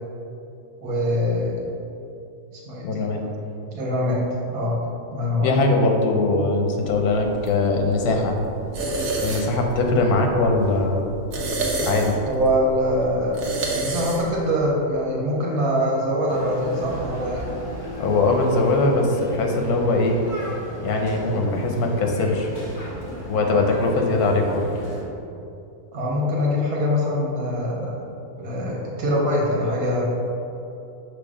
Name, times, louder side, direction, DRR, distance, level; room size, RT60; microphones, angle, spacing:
voice 1, 0.8-1.7 2.5-3.0 3.7-4.2 4.5-4.7 5.1-5.5 12.2-13.4 13.7-17.4 25.9-28.0 28.4-30.0, equal, 85° right, -4 dB, 1.5 m, -23 dB
voice 2, 2.8-3.2 5.4-8.3 9.2-11.0 11.8-12.2 18.0-20.2 20.8-22.5 23.3-24.7, left 2 dB, 85° left, 2 dB, 1.2 m, -21 dB
sound 1, 6.9-14.5, right 2 dB, 70° right, 1.3 m, -30 dB
sound 2, 16.3-25.0, equal, 15° left, 0.9 m, -35 dB
6.0 x 3.2 x 4.9 m, 2.7 s
omnidirectional pair, 1.6 m